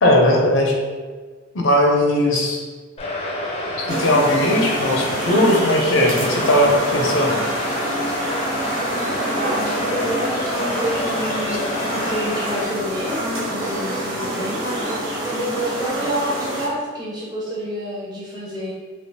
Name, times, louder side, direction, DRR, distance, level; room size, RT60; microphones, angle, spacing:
voice 1, 0.0-0.7 1.5-2.6 3.8-7.3, left 1 dB, 80° left, 0 dB, 0.6 m, -18 dB
sound 1, 3.0-12.7, left 1 dB, 30° left, 0.4 m, -28 dB
sound 2, 3.9-16.7, right 1 dB, 85° right, 1.1 m, -26 dB
voice 2, 9.3-14.8 15.3-18.7, equal, 20° right, -7 dB, 0.6 m, -28 dB
3.4 x 2.8 x 2.7 m, 1.4 s
head